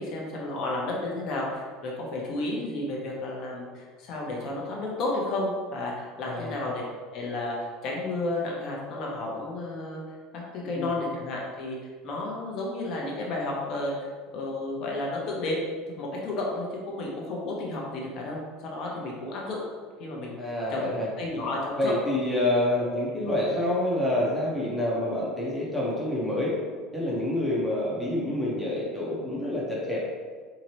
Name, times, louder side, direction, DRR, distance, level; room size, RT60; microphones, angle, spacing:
voice 1, 0.0-6.8 7.1-11.8 12.0-14.1 14.3-15.6 16.0-19.6 20.0-20.9 21.2-22.3 23.2-23.3, left 2 dB, 45° left, -2 dB, 0.8 m, -32 dB
voice 2, 20.4-21.1 21.8-26.6 26.9-30.0, left 1 dB, ahead, -6 dB, 0.7 m, -27 dB
3.8 x 2.9 x 3.1 m, 1.5 s
cardioid pair, 155°, 0 cm